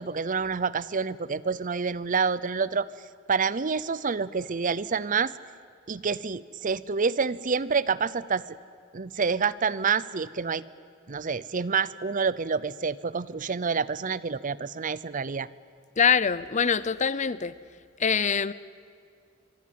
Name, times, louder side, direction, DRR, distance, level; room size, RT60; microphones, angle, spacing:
voice 1, 0.0-2.9 3.3-5.3 5.9-8.4 8.9-10.6 11.1-15.5, right 5 dB, 40° right, 19 dB, 0.6 m, -28 dB
voice 2, 16.0-17.5 18.0-18.5, left 6 dB, 35° left, 17 dB, 0.7 m, -24 dB
24.0 x 24.0 x 9.5 m, 2.3 s
head